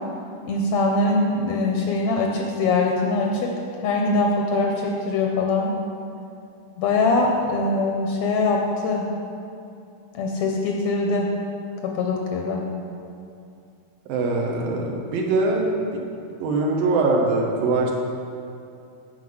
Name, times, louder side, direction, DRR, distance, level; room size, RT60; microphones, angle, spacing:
voice 1, 0.4-3.5 3.8-5.7 6.8-9.1 10.1-11.3 11.8-12.7, left 3 dB, 70° left, 1 dB, 1.8 m, -22 dB
voice 2, 14.1-16.0 16.4-17.9, right 3 dB, 80° right, 0 dB, 2.9 m, -22 dB
9.8 x 5.7 x 7.8 m, 2.5 s
omnidirectional pair, 4.1 m